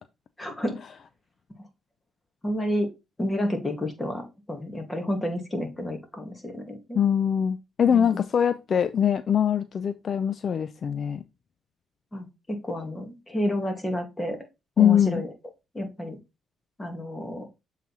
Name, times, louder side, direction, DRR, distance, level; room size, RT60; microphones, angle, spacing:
voice 1, 0.4-0.8 2.4-2.9 3.2-7.0 7.9-8.2 12.1-14.4 14.8-15.3 15.7-16.2 16.8-17.5, equal, 20° left, 2.4 m, -30 dB
voice 2, 7.0-11.2 14.8-15.2, left 8 dB, 50° left, 0.4 m, -23 dB
7.3 x 4.0 x 4.2 m
cardioid pair, 90°, 0 cm